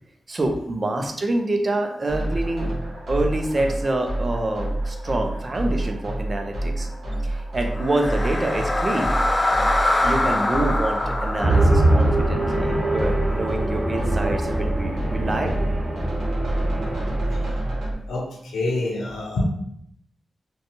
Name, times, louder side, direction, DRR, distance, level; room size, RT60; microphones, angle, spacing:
voice 1, 0.3-2.7 3.1-6.9 7.2-9.1 10.0-15.6 15.9-16.3, right 2 dB, 45° right, 4 dB, 0.5 m, -26 dB
sound 1, 2.1-17.9, right 1 dB, 80° right, 0.9 m, -28 dB
sound 2, 7.7-13.9, left 1 dB, 30° left, 0.3 m, -25 dB
sound 3, 11.4-17.5, right 1 dB, 25° right, 1.0 m, -23 dB
voice 2, 18.1-19.4, left 2 dB, 90° left, -1 dB, 0.5 m, -27 dB
2.5 x 2.3 x 2.8 m, 0.72 s
supercardioid pair, 40°, 0 cm